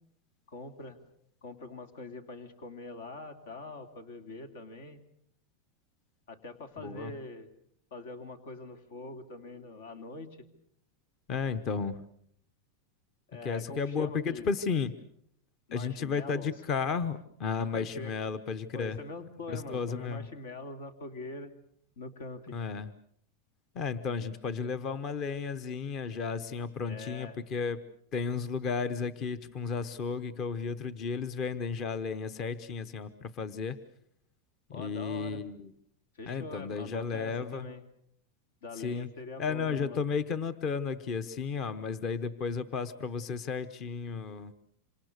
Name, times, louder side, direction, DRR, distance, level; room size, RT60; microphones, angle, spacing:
voice 1, 0.5-1.0 1.4-5.0 6.3-7.5 7.9-10.4 13.3-14.5 15.7-16.5 17.6-18.1 18.7-21.5 22.0-22.6 26.9-27.4 34.7-35.4 36.2-37.8 38.6-40.0, left 3 dB, 75° left, 9 dB, 2.7 m, -43 dB
voice 2, 6.8-7.1 11.3-12.0 13.4-14.9 15.7-19.0 19.5-20.3 22.5-22.9 23.7-27.8 28.1-33.8 34.7-35.7 36.3-37.7 38.7-39.1 39.4-44.5, left 5 dB, 35° left, 14 dB, 1.0 m, -33 dB
27.0 x 26.5 x 6.6 m, 0.69 s
supercardioid pair, 150°, 0 cm